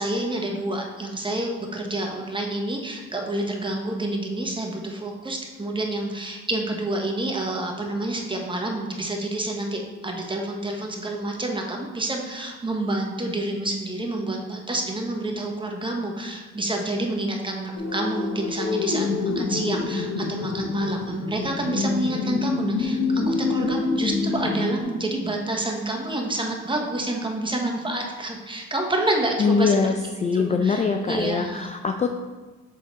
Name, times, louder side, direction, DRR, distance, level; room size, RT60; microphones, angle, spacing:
voice 1, 0.0-29.9 30.3-31.7, right 1 dB, 15° right, 1 dB, 1.0 m, -28 dB
sound 1, 17.8-24.8, left 4 dB, 70° left, 0.9 m, -26 dB
voice 2, 29.4-32.1, left 5 dB, 25° left, 5 dB, 0.3 m, -23 dB
6.5 x 3.7 x 4.0 m, 1.2 s
cardioid pair, 90°, 30 cm